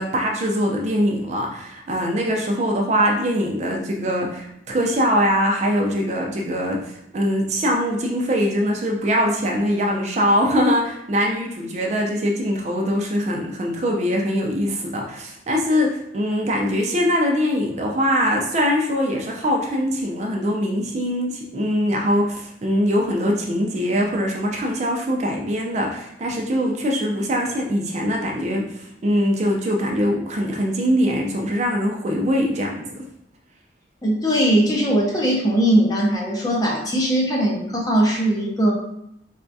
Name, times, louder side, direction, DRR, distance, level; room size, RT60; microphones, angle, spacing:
voice 1, 0.0-33.0, equal, 35° right, 0 dB, 0.4 m, -22 dB
voice 2, 34.0-38.7, right 1 dB, 20° left, -3 dB, 0.5 m, -20 dB
4.1 x 2.3 x 2.6 m, 0.77 s
head